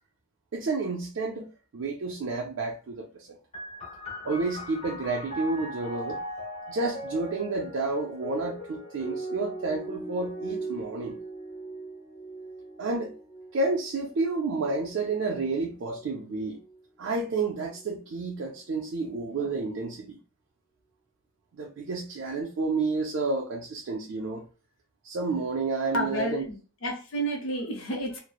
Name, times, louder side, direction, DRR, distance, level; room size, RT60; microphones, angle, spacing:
voice 1, 0.5-3.4 4.2-6.2 6.7-11.2 12.8-13.1 13.5-16.6 17.0-20.2 21.6-24.4 25.0-26.5, right 3 dB, 65° right, -1 dB, 0.4 m, -30 dB
sound 1, 3.5-16.8 17.6-18.4, right 1 dB, 30° left, 1.2 m, -40 dB
voice 2, 25.9-26.6 26.8-28.2, right 1 dB, 70° left, 0 dB, 0.7 m, -30 dB
2.9 x 2.0 x 2.3 m, 0.36 s
head